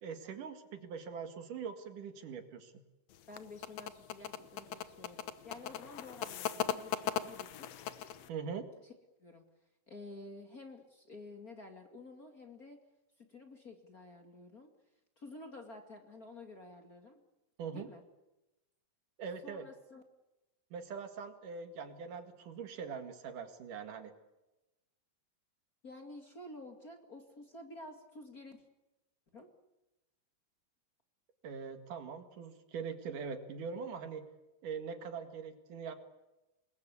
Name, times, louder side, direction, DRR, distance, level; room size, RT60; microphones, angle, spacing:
voice 1, 0.0-2.7 8.3-8.7 17.6-17.9 19.2-19.7 20.7-24.1 31.4-34.3 34.6-35.9, right 6 dB, 70° right, 7 dB, 3.5 m, -42 dB
sound 1, 3.1-8.3, left 10 dB, 65° left, 1.9 m, -38 dB
voice 2, 3.3-7.7 8.8-8.9 9.2-9.4 9.9-12.8 13.2-14.7 15.2-17.2 17.7-18.0 19.4-20.0 25.8-28.6 29.3-29.5, left 2 dB, 30° left, 4 dB, 2.3 m, -51 dB
27.5 x 21.5 x 8.4 m, 1.0 s
omnidirectional pair, 3.9 m